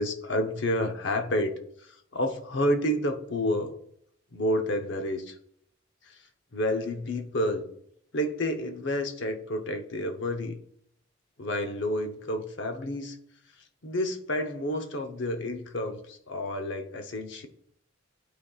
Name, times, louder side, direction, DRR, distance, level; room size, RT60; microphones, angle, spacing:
voice 1, 0.0-3.8 4.3-5.4 6.0-6.2 6.5-7.7 8.1-10.6 11.4-13.2 13.8-17.5, left 1 dB, 65° left, 5 dB, 0.9 m, -30 dB
11.5 x 4.2 x 2.4 m, 0.69 s
head